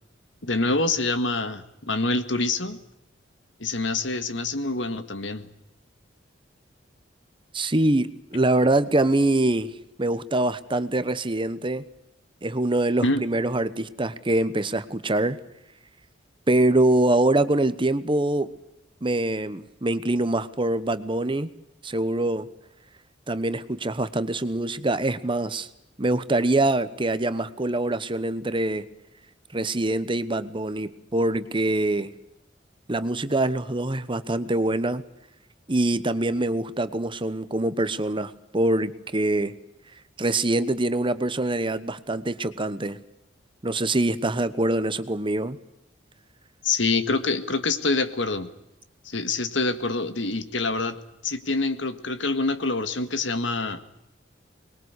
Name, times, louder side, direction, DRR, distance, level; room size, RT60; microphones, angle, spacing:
voice 1, 0.4-2.8 3.6-5.5 13.0-13.2 46.6-48.5 49.1-53.8, left 3 dB, 75° left, 10 dB, 1.8 m, -26 dB
voice 2, 7.5-9.7 10.0-11.8 12.4-15.4 16.5-18.5 19.0-21.5 21.8-22.5 23.3-25.7 26.0-28.9 29.5-32.1 32.9-35.0 35.7-39.5 40.2-43.0 43.6-45.6, right 2 dB, 25° right, 13 dB, 1.1 m, -24 dB
24.5 x 21.5 x 8.2 m, 0.85 s
head